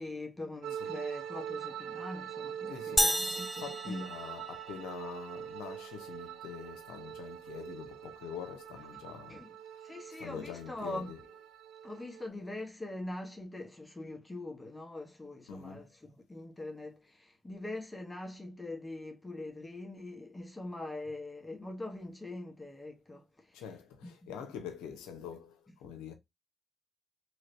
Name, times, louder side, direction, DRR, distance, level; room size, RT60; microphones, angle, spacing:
voice 1, 0.0-4.1 9.3-9.5 9.8-11.1 11.8-23.6 24.0-24.3, left 2 dB, 25° left, 1.1 m, -43 dB
sound 1, 0.6-12.3, right 9 dB, 80° right, 0.3 m, -43 dB
voice 2, 2.7-9.4 9.7-9.9 10.2-11.2 15.5-15.9 23.5-26.1, left 8 dB, 85° left, 0.7 m, -45 dB
sound 2, 3.0-4.9, equal, ahead, 0.4 m, -31 dB
3.1 x 3.1 x 2.6 m
hypercardioid pair, 40°, 0 cm